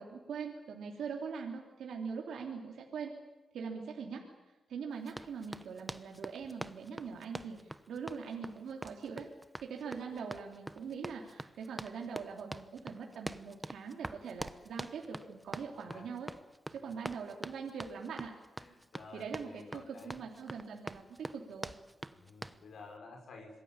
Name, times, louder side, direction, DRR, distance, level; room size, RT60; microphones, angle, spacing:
voice 1, 0.0-3.1 3.5-9.3 9.6-16.3 16.7-18.3 19.1-21.7, right 6 dB, 80° right, 1 dB, 3.3 m, -42 dB
Run, 5.1-22.6, right 1 dB, 10° right, 1.0 m, -45 dB
voice 2, 18.6-20.2 22.1-23.6, left 3 dB, 70° left, 2 dB, 5.9 m, -52 dB
26.0 x 21.0 x 8.9 m, 1.1 s
cardioid pair, 85°, 0 cm